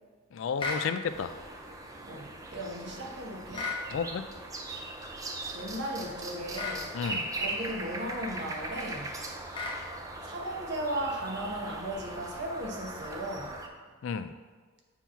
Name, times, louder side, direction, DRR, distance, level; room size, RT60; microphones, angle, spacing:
voice 1, 0.3-1.3 3.9-4.3 6.9-7.3 14.0-14.3, left 6 dB, 60° left, 11 dB, 0.3 m, -32 dB
sound 1, 0.6-0.9 3.5-3.8 6.5-6.8 9.5-9.8, left 3 dB, 25° left, 0.8 m, -33 dB
sound 2, 1.1-13.7, right 2 dB, 15° right, 0.4 m, -40 dB
voice 2, 2.1-3.7 5.5-6.9 7.4-9.1 10.2-13.5, right 1 dB, 55° right, 0 dB, 0.9 m, -36 dB
7.2 x 2.9 x 5.6 m, 1.5 s
head